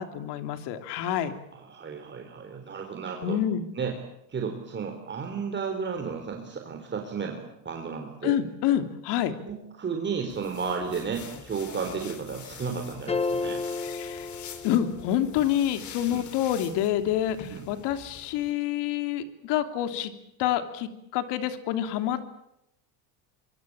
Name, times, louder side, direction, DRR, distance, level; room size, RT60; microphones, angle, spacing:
voice 1, 0.0-1.4 3.2-3.6 8.2-9.3 13.8-20.1 20.4-22.3, left 11 dB, 70° left, 9 dB, 3.1 m, -28 dB
voice 2, 1.5-3.4 3.7-4.0 4.3-8.4 9.5-13.6 16.1-16.2 17.5-17.6, right 5 dB, 25° right, 3 dB, 3.8 m, -33 dB
sound 1, 10.3-18.5, left 8 dB, 40° left, 3.4 m, -45 dB
sound 2, 13.1-15.3, left 3 dB, 15° left, 1.0 m, -32 dB
25.0 x 24.0 x 8.7 m, 0.82 s
cardioid pair, 140°, 43 cm